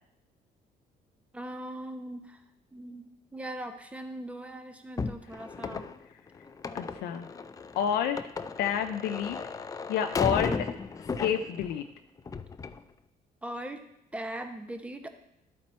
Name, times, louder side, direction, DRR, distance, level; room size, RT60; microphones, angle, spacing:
voice 1, 1.3-2.4 2.7-5.9 13.4-13.8 14.1-15.1, right 1 dB, 5° right, 7 dB, 0.8 m, -40 dB
sound 1, 5.0-11.8 12.2-12.8, left 4 dB, 20° left, 0.4 m, -35 dB
voice 2, 6.7-7.3 7.8-8.2 8.6-9.4 9.9-10.7 11.2-11.8, left 8 dB, 75° left, 5 dB, 0.5 m, -29 dB
12.5 x 4.3 x 4.3 m, 0.80 s
cardioid pair, 110°, 17 cm